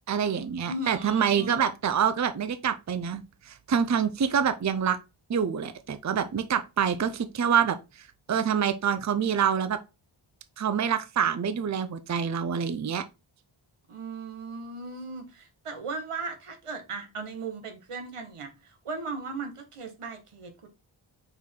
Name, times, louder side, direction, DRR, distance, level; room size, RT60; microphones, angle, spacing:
voice 1, 0.1-5.0 5.3-7.8 8.3-9.8 10.6-13.0, right 7 dB, 35° right, 0.6 m, -26 dB
voice 2, 0.6-1.7 13.9-20.7, right 3 dB, 85° right, 1.6 m, -37 dB
5.7 x 4.7 x 3.7 m
wide cardioid pair, 110°, 50 cm